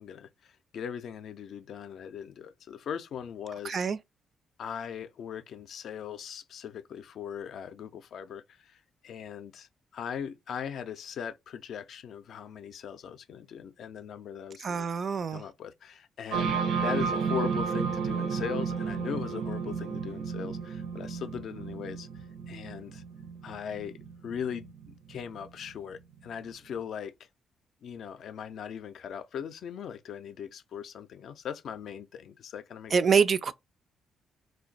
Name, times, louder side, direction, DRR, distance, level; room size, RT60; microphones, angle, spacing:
voice 1, 0.0-3.8 4.6-14.9 15.3-23.0 23.4-27.1 27.8-32.9, left 8 dB, 65° left, 0.4 m, -39 dB
voice 2, 3.6-4.0 14.6-15.4 32.9-33.5, right 6 dB, 45° right, 0.3 m, -25 dB
sound 1, 16.3-25.9, right 6 dB, 85° right, 0.6 m, -32 dB
2.5 x 2.2 x 3.8 m
cardioid pair, 90°, 0 cm